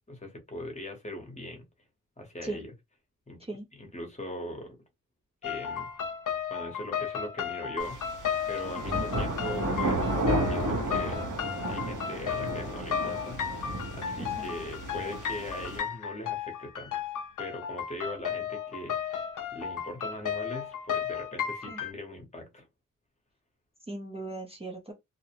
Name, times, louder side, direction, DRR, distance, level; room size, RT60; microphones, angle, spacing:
voice 1, 0.0-1.6 2.2-2.7 3.3-4.8 5.4-5.9 6.5-11.3 11.7-17.0 17.4-22.7, left 1 dB, 20° left, 0.8 m, -41 dB
sound 1, 5.4-21.9, left 8 dB, 70° left, 0.5 m, -34 dB
sound 2, 7.8-15.8, right 1 dB, 70° right, 0.9 m, -32 dB
voice 2, 23.9-24.9, right 2 dB, 20° right, 0.5 m, -39 dB
2.5 x 2.0 x 2.8 m
wide cardioid pair, 165°, 32 cm